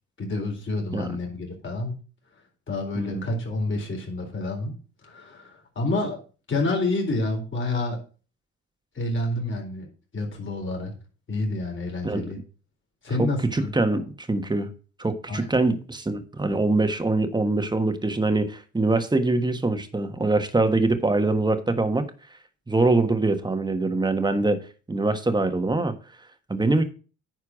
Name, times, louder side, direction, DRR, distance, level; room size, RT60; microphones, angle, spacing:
voice 1, 0.2-1.9 2.7-4.7 5.0-6.2 6.5-8.0 9.0-9.9 10.1-10.9 11.3-12.4 13.0-13.8 15.3-15.5, left 2 dB, 40° left, 4.1 m, -28 dB
voice 2, 2.9-3.3 12.0-12.3 13.2-14.7 15.0-22.1 22.7-24.6 24.9-26.0 26.5-26.8, right 2 dB, 15° right, 1.4 m, -23 dB
9.9 x 4.6 x 6.2 m
cardioid pair, 90°, 30 cm